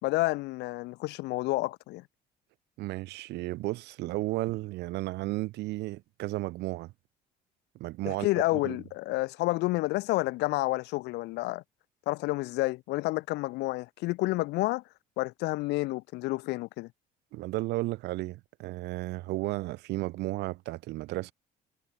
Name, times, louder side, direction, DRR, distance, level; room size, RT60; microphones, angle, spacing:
voice 1, 0.0-2.0 8.0-11.6 12.0-14.8 15.2-16.9, left 20 dB, 90° left, 3.3 m, -29 dB
voice 2, 2.8-6.9 7.8-8.3 8.6-8.8 17.3-21.3, right 18 dB, 85° right, 7.2 m, -33 dB
cardioid pair, 110°, 17 cm